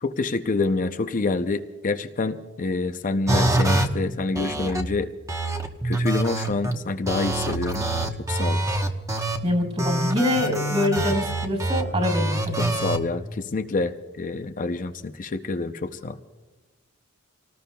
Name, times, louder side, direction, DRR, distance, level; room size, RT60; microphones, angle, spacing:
voice 1, 0.0-5.1 5.8-7.9 8.3-8.6 12.6-16.2, left 3 dB, 35° left, 8 dB, 0.6 m, -27 dB
sound 1, 3.3-3.8 4.3-4.8 5.3-6.7 7.1-9.4 9.8-13.0, right 1 dB, 15° right, 1.0 m, -25 dB
voice 2, 9.4-12.7, left 1 dB, 35° right, 4 dB, 4.0 m, -25 dB
29.0 x 19.0 x 2.3 m, 1.2 s
head